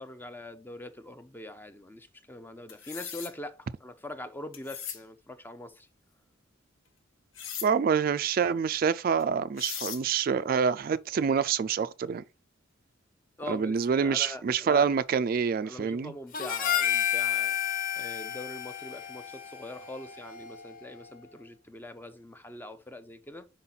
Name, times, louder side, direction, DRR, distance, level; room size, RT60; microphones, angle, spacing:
voice 1, 0.0-5.9 13.4-14.9 15.6-17.6 17.9-23.5, left 1 dB, 10° left, 0.5 m, -43 dB
sound 1, 2.7-3.3 4.5-5.0 7.4-7.7 9.2-9.3 9.6-10.0, left 8 dB, 85° left, 1.1 m, -38 dB
voice 2, 7.6-12.2 13.5-16.1, right 6 dB, 45° right, 0.3 m, -26 dB
Harmonica, 16.3-20.8, left 10 dB, 45° left, 0.8 m, -31 dB
5.7 x 5.0 x 3.9 m
head